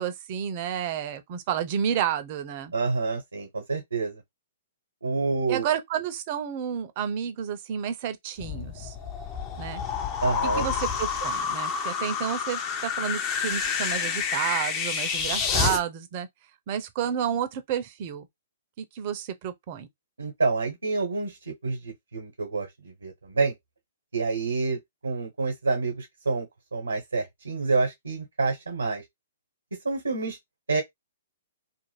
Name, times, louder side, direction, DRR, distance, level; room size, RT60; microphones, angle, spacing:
voice 1, 0.0-2.7 5.5-9.0 9.6-9.8 10.4-16.3 16.7-18.3 18.8-19.9, right 9 dB, 40° right, 0.6 m, -30 dB
voice 2, 2.7-4.2 5.0-5.7 10.2-10.7 20.2-23.5 24.1-26.5 26.7-29.0 29.8-30.4 30.7-30.8, right 3 dB, 90° right, 0.9 m, -28 dB
sound 1, 8.4-15.8, left 6 dB, 30° left, 0.7 m, -29 dB
2.5 x 2.1 x 3.2 m
hypercardioid pair, 125°, 0 cm